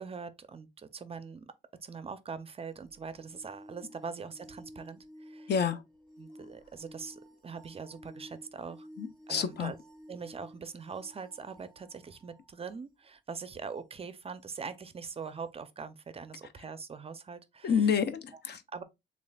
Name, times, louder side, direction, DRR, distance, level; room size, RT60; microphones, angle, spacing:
voice 1, 0.0-1.5 1.8-5.5 6.2-8.9 9.3-9.8 10.1-17.9 18.3-18.4 18.7-18.8, right 5 dB, 30° right, 0.5 m, -42 dB
sound 1, 2.7-12.5 14.8-14.9, equal, 5° left, 1.3 m, -53 dB
voice 2, 5.5-5.8 9.0-9.7 17.6-18.6, left 7 dB, 55° left, 0.6 m, -29 dB
6.9 x 2.4 x 2.3 m
cardioid pair, 90°, 20 cm